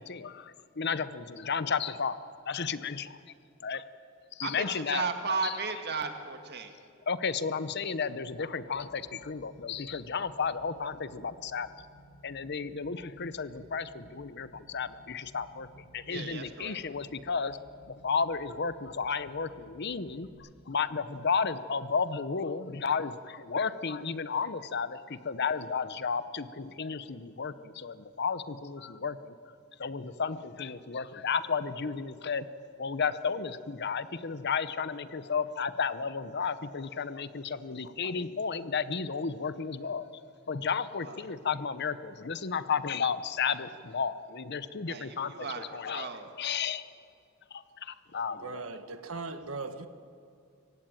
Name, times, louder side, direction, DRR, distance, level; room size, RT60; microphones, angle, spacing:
voice 1, 0.0-2.2 2.5-3.2 3.6-3.8 4.4-5.5 7.1-11.7 12.2-15.7 15.9-17.6 18.0-20.3 20.7-29.3 29.8-32.4 32.8-46.1 46.4-46.8 47.5-48.6, left 5 dB, 55° left, 14 dB, 0.8 m, -33 dB
voice 2, 4.4-6.8 16.1-16.8 41.0-41.5 44.9-46.3, right 4 dB, 55° right, 6 dB, 2.0 m, -35 dB
sound 1, 8.3-20.3, right 1 dB, 30° left, 5.8 m, -57 dB
voice 3, 48.3-49.9, right 3 dB, 80° right, 9 dB, 1.4 m, -39 dB
25.5 x 17.0 x 9.1 m, 2.5 s
head